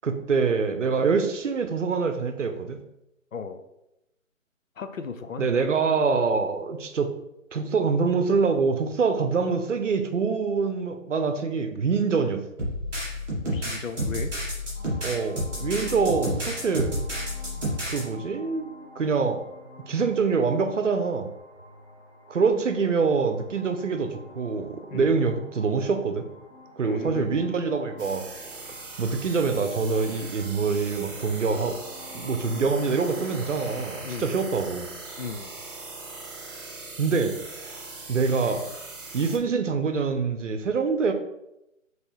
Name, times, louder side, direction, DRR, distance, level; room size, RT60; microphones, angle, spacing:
voice 1, 0.0-2.8 5.4-7.1 7.5-12.5 15.0-17.0 17.9-18.7 19.0-19.4 19.9-21.3 22.3-26.3 26.8-28.3 29.0-31.8 32.1-34.9 37.0-37.4 38.1-38.7 39.1-41.1, right 5 dB, 65° right, 8 dB, 0.7 m, -25 dB
voice 2, 4.8-5.5 13.4-14.3 24.9-25.2 26.8-27.4 34.0-34.4 35.2-35.5, left 5 dB, 75° left, 8 dB, 0.6 m, -35 dB
sound 1, 12.6-18.0, equal, 5° right, 1.1 m, -30 dB
sound 2, 14.7-34.0, left 2 dB, 15° left, 0.9 m, -48 dB
sound 3, 28.0-39.4, right 3 dB, 40° right, 0.9 m, -40 dB
5.2 x 3.2 x 3.1 m, 0.87 s
figure-of-eight pair, 160°, 40 cm